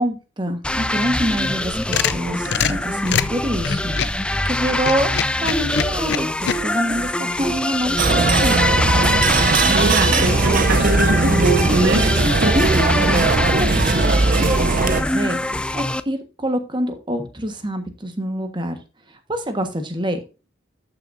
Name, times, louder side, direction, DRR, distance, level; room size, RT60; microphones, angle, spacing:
voice 1, 0.0-4.0 4.4-8.9 12.5-18.8 19.1-20.2, equal, 25° right, 7 dB, 1.4 m, -26 dB
sound 1, 0.6-16.0, left 1 dB, 5° left, 0.3 m, -23 dB
sound 2, 1.5-4.2 4.7-6.6, left 7 dB, 60° left, 0.5 m, -24 dB
sound 3, 8.0-15.0, right 3 dB, 45° right, 0.7 m, -19 dB
voice 2, 9.7-12.5 13.1-13.3, right 2 dB, 60° right, 2 dB, 1.5 m, -23 dB
13.0 x 6.2 x 2.6 m, 0.30 s
head